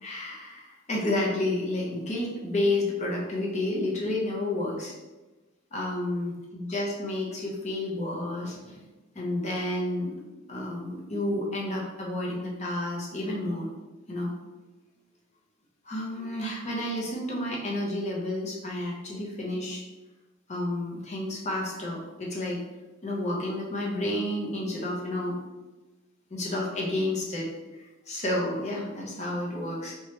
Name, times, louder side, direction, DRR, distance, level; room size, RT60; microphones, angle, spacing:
voice 1, 0.0-4.9 5.7-8.8 9.1-10.2 10.5-13.7 14.1-14.3 15.9-19.8 20.5-22.6 23.0-25.4 26.3-29.9, left 1 dB, 35° left, -3 dB, 0.7 m, -30 dB
2.8 x 2.3 x 3.1 m, 1.1 s
head